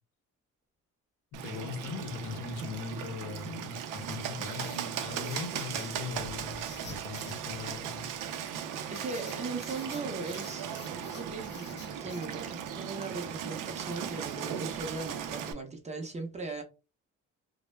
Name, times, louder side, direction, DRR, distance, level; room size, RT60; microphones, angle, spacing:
voice 1, 1.3-8.1, left 5 dB, 80° left, 0.7 m, -40 dB
Bird, 1.3-15.5, right 8 dB, 85° right, 0.5 m, -38 dB
Writing, 3.1-12.3, left 5 dB, 35° left, 0.4 m, -53 dB
voice 2, 8.9-16.6, right 3 dB, 20° right, 0.5 m, -39 dB
2.2 x 2.0 x 3.1 m
cardioid pair, 150°, 31 cm